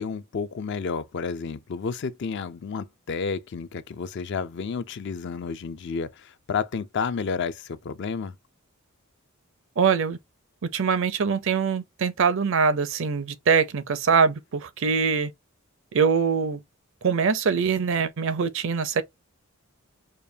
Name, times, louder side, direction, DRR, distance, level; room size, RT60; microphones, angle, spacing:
voice 1, 0.0-8.4, left 5 dB, 55° left, 0.4 m, -31 dB
voice 2, 9.8-10.2 10.6-15.3 15.9-16.6 17.0-19.0, right 5 dB, 60° right, 0.5 m, -23 dB
5.0 x 2.2 x 2.6 m
head